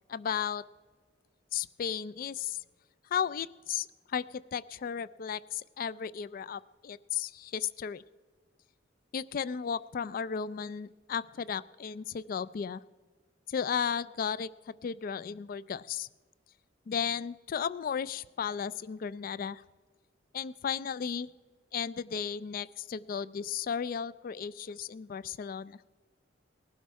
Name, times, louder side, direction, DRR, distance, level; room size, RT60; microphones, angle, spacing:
voice 1, 0.1-0.6 1.5-2.6 3.1-8.0 9.1-12.8 13.5-16.1 16.9-19.6 20.3-21.3 21.7-25.8, left 7 dB, 50° left, 19 dB, 0.3 m, -34 dB
19.0 x 11.5 x 4.7 m, 1.4 s
head